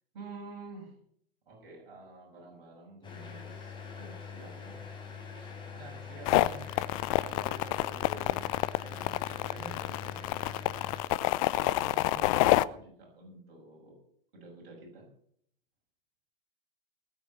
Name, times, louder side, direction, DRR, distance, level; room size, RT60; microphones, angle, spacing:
voice 1, 0.1-1.0 1.5-4.8 5.3-6.8 7.1-8.4 8.8-11.1 11.5-14.0 14.3-15.1, right 3 dB, 50° right, -2 dB, 6.6 m, -49 dB
sound 1, 3.0-11.0, left 5 dB, 15° left, 3.9 m, -44 dB
sound 2, 6.3-12.6, left 18 dB, 35° left, 0.6 m, -28 dB
19.0 x 7.7 x 7.0 m, 0.68 s
figure-of-eight pair, 95°, 29 cm